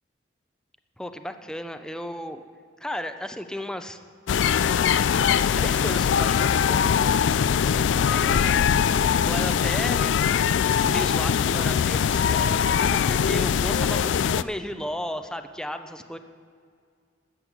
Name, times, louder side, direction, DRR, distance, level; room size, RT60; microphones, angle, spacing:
voice 1, 1.0-2.4 2.8-4.0 5.5-6.9 8.0-8.8 9.2-10.2 10.8-16.2, left 1 dB, 5° left, 8 dB, 0.6 m, -34 dB
sound 1, 4.3-14.4, left 7 dB, 80° left, 0.3 m, -22 dB
13.0 x 8.4 x 7.3 m, 2.3 s
head